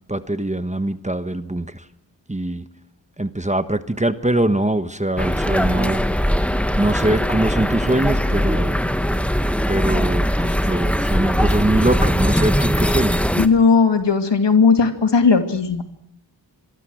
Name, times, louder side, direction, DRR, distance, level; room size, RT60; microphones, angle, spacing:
voice 1, 0.1-1.8 2.3-2.7 3.2-6.0 6.8-8.8 9.7-13.2, right 1 dB, 15° right, 11 dB, 1.3 m, -22 dB
sound 1, 5.2-13.5, equal, 5° left, 1.3 m, -20 dB
voice 2, 13.4-15.8, left 5 dB, 65° left, 7 dB, 2.5 m, -16 dB
25.5 x 22.5 x 6.4 m, 0.69 s
cardioid pair, 50°, 46 cm